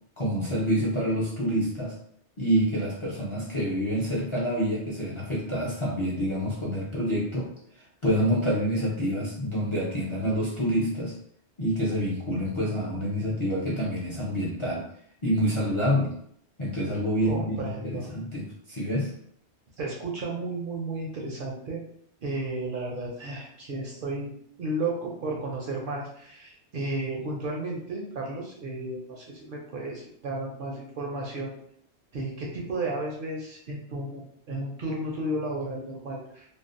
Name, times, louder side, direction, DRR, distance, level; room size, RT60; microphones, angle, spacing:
voice 1, 0.2-1.9 2.4-7.5 8.0-11.1 11.6-14.8 15.2-16.1 16.6-19.1, equal, 40° left, -6 dB, 0.4 m, -27 dB
voice 2, 17.3-18.1 19.8-21.8 22.2-24.3 24.6-31.5 32.1-36.5, right 2 dB, 60° right, -2 dB, 0.6 m, -33 dB
2.5 x 2.1 x 2.4 m, 0.66 s
omnidirectional pair, 1.2 m